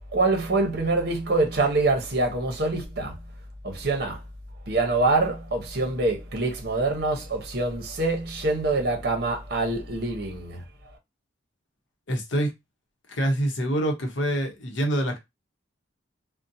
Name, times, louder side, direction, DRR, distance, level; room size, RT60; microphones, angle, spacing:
voice 1, 0.1-3.2 3.6-4.2 4.7-10.6, right 2 dB, 55° right, 0.8 m, -25 dB
voice 2, 12.1-12.5 13.1-15.2, right 1 dB, 75° left, 0.7 m, -25 dB
2.6 x 2.1 x 2.6 m
head